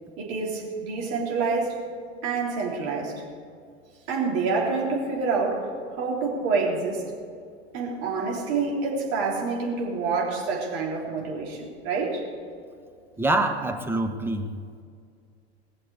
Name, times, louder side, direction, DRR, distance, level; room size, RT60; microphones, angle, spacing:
voice 1, 0.2-1.7 2.2-3.1 4.1-5.7 6.0-7.0 7.7-12.2, right 4 dB, 45° right, -3 dB, 3.8 m, -27 dB
voice 2, 13.2-14.5, right 2 dB, 5° right, 5 dB, 1.1 m, -25 dB
20.0 x 7.0 x 8.1 m, 2.2 s
figure-of-eight pair, 80°, 33 cm